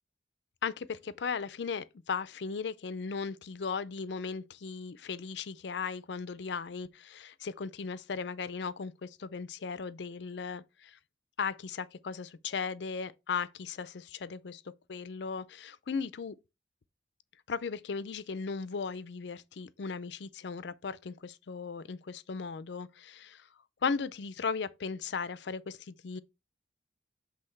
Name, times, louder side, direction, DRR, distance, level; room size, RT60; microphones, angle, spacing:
voice 1, 0.6-10.9 11.4-14.6 14.9-16.4 17.5-23.4 23.8-26.2, left 5 dB, 65° left, 0.5 m, -37 dB
7.7 x 3.4 x 4.5 m
head